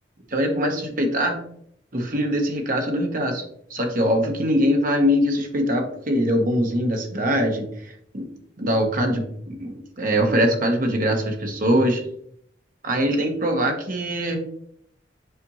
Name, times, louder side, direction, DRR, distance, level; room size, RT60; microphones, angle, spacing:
voice 1, 0.3-1.4 1.9-3.4 3.7-7.7 8.1-8.3 8.6-12.0 12.8-14.4, equal, 50° right, 3 dB, 1.2 m, -22 dB
6.7 x 5.2 x 3.0 m, 0.69 s
head